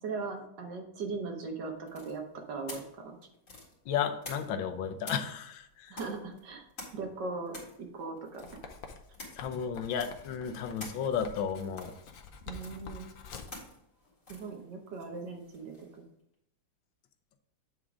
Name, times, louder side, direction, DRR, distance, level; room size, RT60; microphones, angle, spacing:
voice 1, 0.0-2.2 2.5-3.2 5.9-6.6 6.9-8.6 12.5-13.1 14.3-15.9, right 4 dB, 65° right, 3 dB, 1.6 m, -39 dB
sound 1, 1.9-4.7 5.0-16.0, left 2 dB, 40° left, 2.4 m, -49 dB
voice 2, 3.9-6.0 9.3-11.9, left 7 dB, 75° left, 5 dB, 1.4 m, -33 dB
Writing, 8.4-13.6, left 5 dB, 60° left, 1.0 m, -47 dB
8.3 x 3.8 x 4.8 m, 0.79 s
omnidirectional pair, 2.2 m